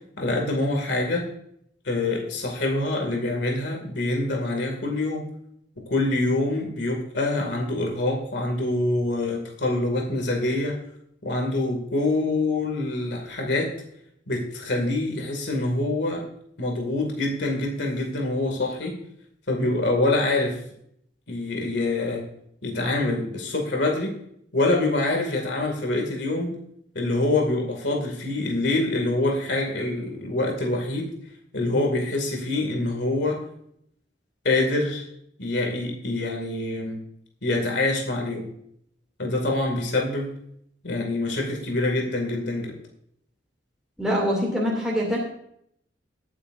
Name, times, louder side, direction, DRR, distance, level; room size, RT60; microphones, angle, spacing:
voice 1, 0.2-1.3 1.8-5.2 5.9-10.8 11.2-13.8 14.3-16.2 16.6-19.0 19.5-20.6 21.3-22.2 22.6-24.1 24.5-26.5 26.9-31.1 31.5-33.4 34.4-35.1 35.4-37.0 37.4-38.5 39.2-40.3 40.8-42.7, left 2 dB, 70° left, 1 dB, 2.3 m, -25 dB
voice 2, 44.0-45.2, equal, 5° right, -4 dB, 2.6 m, -24 dB
21.0 x 8.8 x 2.6 m, 0.72 s
head